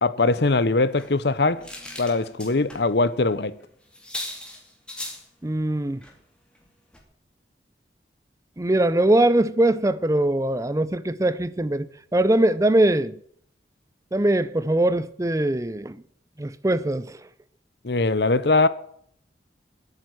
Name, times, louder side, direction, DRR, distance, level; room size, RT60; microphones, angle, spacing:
voice 1, 0.0-1.7 2.0-3.6 17.8-18.7, left 3 dB, 70° left, 0.9 m, -21 dB
sound 1, 0.9-2.9 3.2-3.3 3.6-3.7 3.9-5.3 6.0-6.2 6.6-6.7 6.9-7.0, left 1 dB, 5° left, 2.6 m, -38 dB
voice 2, 5.4-6.0 8.6-13.1 14.1-16.0 16.4-17.1, right 1 dB, 20° right, 0.5 m, -21 dB
11.0 x 8.9 x 9.5 m
head